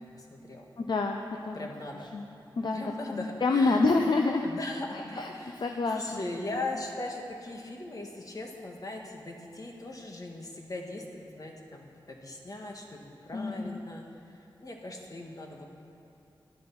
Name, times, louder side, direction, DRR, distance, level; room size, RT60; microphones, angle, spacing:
voice 1, 0.0-0.6 1.5-2.1 2.7-3.8 4.4-14.0 14.3-15.8, left 2 dB, 45° left, 1 dB, 1.6 m, -39 dB
voice 2, 0.8-1.7 2.1-2.3 2.6-4.5 4.9-5.3 5.6-6.2 13.3-13.8, left 3 dB, 60° left, 4 dB, 0.6 m, -28 dB
12.0 x 10.5 x 6.1 m, 2.8 s
wide cardioid pair, 95°, 9 cm